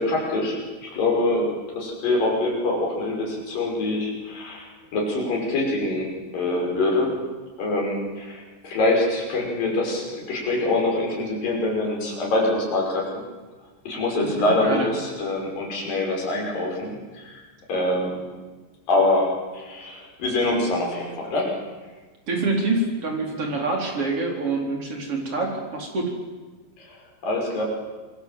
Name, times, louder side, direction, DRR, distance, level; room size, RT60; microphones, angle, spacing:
voice 1, 0.0-1.5 1.8-7.1 7.6-13.2 13.9-17.4 17.7-18.2 18.9-21.5 26.8-27.0 27.2-27.6, left 2 dB, 55° left, -1 dB, 7.3 m, -25 dB
voice 2, 22.3-26.2, right 3 dB, 35° right, 1 dB, 4.7 m, -26 dB
27.5 x 23.0 x 7.7 m, 1.3 s
omnidirectional pair, 5.0 m